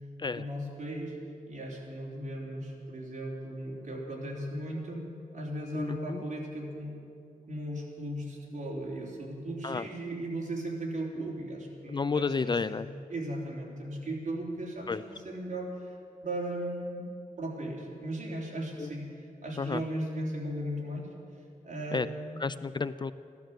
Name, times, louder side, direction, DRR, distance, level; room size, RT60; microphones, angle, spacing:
voice 1, 0.3-1.2 1.5-5.0 5.3-7.0 7.5-12.8 13.1-16.0 16.2-21.1 21.6-22.4, right 1 dB, 60° right, -2 dB, 3.5 m, -37 dB
voice 2, 5.7-6.2 9.6-9.9 11.9-12.9 14.9-15.0 18.8-18.9 19.6-19.8 21.9-22.1 22.4-23.1, left 4 dB, 30° left, 14 dB, 0.3 m, -31 dB
15.0 x 11.5 x 7.7 m, 2.5 s
wide cardioid pair, 115°, 14 cm